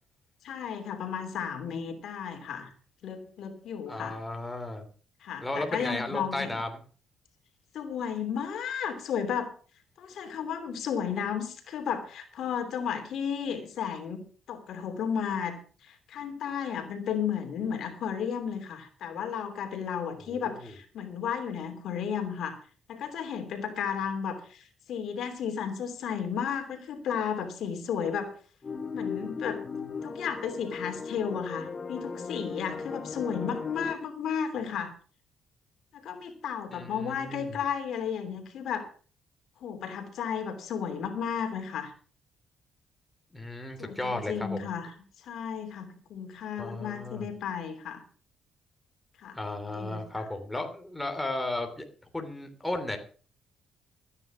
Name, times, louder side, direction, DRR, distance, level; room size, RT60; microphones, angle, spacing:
voice 1, 0.4-2.7 3.0-4.2 5.2-6.5 7.7-9.5 10.0-14.2 14.5-22.6 22.9-28.3 28.9-29.6 30.0-34.9 35.9-38.9 39.6-41.9 43.8-44.9 45.2-48.0 49.2-49.4 49.7-50.2, left 7 dB, 70° left, 6 dB, 3.0 m, -33 dB
voice 2, 3.9-4.8 5.4-6.7 20.3-20.7 36.7-37.6 43.3-44.7 46.6-47.3 49.3-51.9 52.1-53.0, left 2 dB, 10° left, 5 dB, 3.2 m, -34 dB
sound 1, 28.6-34.0, left 5 dB, 35° left, 1.1 m, -37 dB
14.0 x 9.8 x 6.2 m, 0.41 s
cardioid pair, 90°, 0 cm